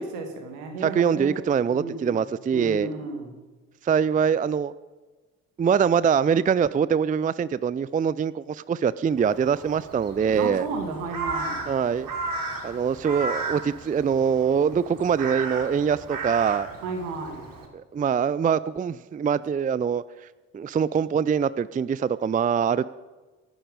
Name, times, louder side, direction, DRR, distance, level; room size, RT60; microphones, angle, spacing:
voice 1, 0.0-1.3 1.7-2.2 2.5-3.3 10.3-11.7 16.8-17.4, right 4 dB, 70° right, 5 dB, 2.5 m, -33 dB
voice 2, 0.8-2.9 3.8-4.7 5.6-10.7 11.7-12.1 12.6-16.7 17.7-20.0 20.5-22.9, right 7 dB, 20° right, 18 dB, 0.5 m, -23 dB
Crow, 9.2-17.7, right 3 dB, 50° right, 3.0 m, -35 dB
24.0 x 11.5 x 5.2 m, 1.2 s
figure-of-eight pair, 40°, 42 cm